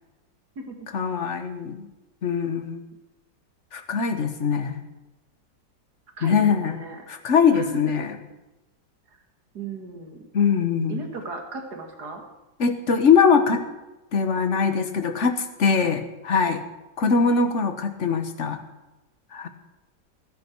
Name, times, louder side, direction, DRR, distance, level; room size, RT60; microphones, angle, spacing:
voice 1, 0.9-1.9 2.2-2.8 3.7-4.8 6.2-6.8 7.1-8.1 10.3-11.0 12.6-13.6 14.1-16.6 17.0-18.6 19.3-19.5, left 5 dB, 45° left, 8 dB, 1.4 m, -22 dB
voice 2, 6.2-7.0 7.5-7.8 9.1-9.2 9.5-10.3 10.9-12.2, right 3 dB, 60° right, 4 dB, 2.6 m, -36 dB
19.0 x 10.5 x 4.7 m, 1.0 s
omnidirectional pair, 1.9 m